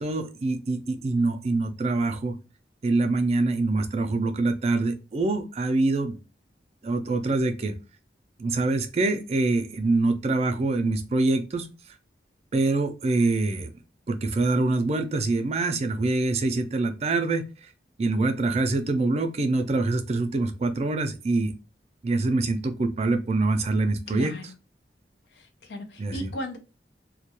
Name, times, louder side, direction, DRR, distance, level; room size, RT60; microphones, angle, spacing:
voice 1, 0.0-2.3 2.8-6.2 6.8-7.7 8.4-11.7 12.5-13.7 14.1-17.4 18.0-21.5 22.0-24.3 26.0-26.3, right 2 dB, 35° right, 0.4 m, -25 dB
voice 2, 24.1-24.4 25.4-26.6, left 1 dB, 80° left, 0.5 m, -36 dB
2.3 x 2.1 x 2.8 m
head